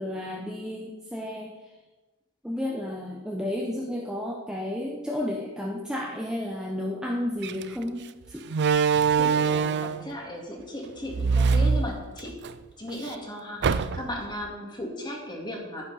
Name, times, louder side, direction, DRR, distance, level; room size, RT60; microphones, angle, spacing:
voice 1, 0.0-1.5 2.4-8.4, left 1 dB, 5° right, -2 dB, 0.9 m, -32 dB
Slam, 7.4-7.6 8.5-10.1 11.1-12.5 12.9-13.0 13.6-14.2, right 5 dB, 50° right, 0.4 m, -23 dB
voice 2, 9.1-12.3 12.8-15.9, left 1 dB, 20° left, 0 dB, 2.2 m, -36 dB
10.5 x 9.7 x 4.1 m, 1.1 s
head